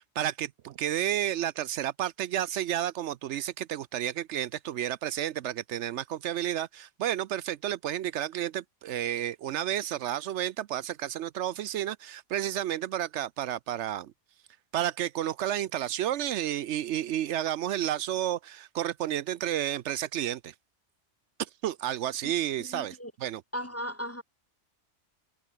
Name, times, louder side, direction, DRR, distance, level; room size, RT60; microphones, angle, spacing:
voice 1, 0.2-14.1 14.7-20.5 21.4-23.4, right 11 dB, 75° right, 0.9 m, -31 dB
voice 2, 22.6-23.1 23.5-24.2, equal, 15° left, 1.2 m, -37 dB
omnidirectional pair, 1.2 m